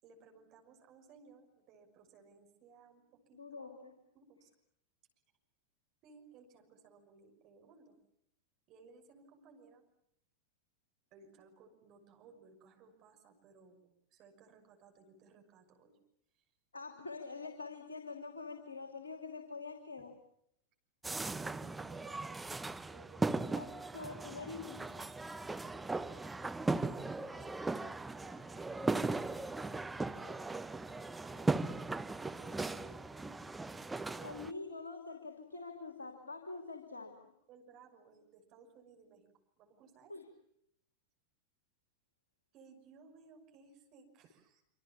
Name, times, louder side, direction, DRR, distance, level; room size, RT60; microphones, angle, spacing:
voice 1, 0.0-3.7 4.1-4.5 6.0-8.0 8.7-9.9 11.1-16.0 16.3-16.5 21.2-22.5 22.9-23.9 25.3-25.6 26.0-27.7 28.1-29.7 30.1-31.6 32.2-34.5 35.8-35.9 37.5-39.3 39.6-40.1 42.5-44.6, right 4 dB, 40° right, 4 dB, 6.2 m, -60 dB
voice 2, 3.3-3.9 16.7-20.1 23.6-25.0 34.2-37.3 40.1-40.2, left 4 dB, 75° left, 5 dB, 3.0 m, -45 dB
sound 1, 21.0-34.5, right 3 dB, 10° right, 0.9 m, -38 dB
26.5 x 26.0 x 7.3 m, 0.73 s
figure-of-eight pair, 90°, 0 cm